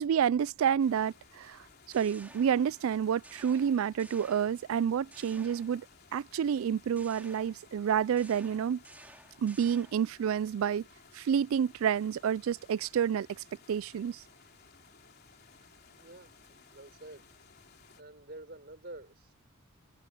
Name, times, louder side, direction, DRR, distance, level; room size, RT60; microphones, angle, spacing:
voice 1, 0.0-1.6 1.9-5.9 6.1-8.8 9.4-10.8 11.1-14.2, right 8 dB, 70° right, 0.3 m, -29 dB
sound 1, 0.8-18.0, left 6 dB, 45° left, 3.5 m, -59 dB
sound 2, 1.6-2.9 3.2-4.8 5.1-6.1 6.9-10.1, right 2 dB, 5° right, 2.5 m, -55 dB
voice 2, 15.9-16.3 16.7-17.2 18.0-19.3, right 2 dB, 45° right, 5.8 m, -48 dB
head